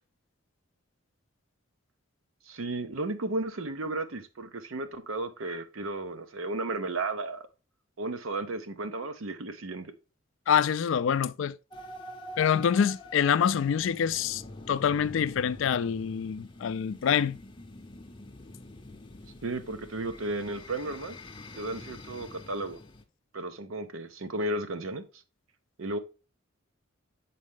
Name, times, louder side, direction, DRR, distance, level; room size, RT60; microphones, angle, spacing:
voice 1, 2.5-7.4 8.0-9.9 19.4-21.2 21.6-22.8 23.3-25.0 25.8-26.0, right 2 dB, 85° right, 0.8 m, -34 dB
voice 2, 10.5-11.6 12.4-14.4 14.7-17.4, left 8 dB, 70° left, 0.3 m, -26 dB
sound 1, 11.7-23.0, left 1 dB, 25° left, 0.6 m, -46 dB
7.5 x 4.1 x 3.4 m
head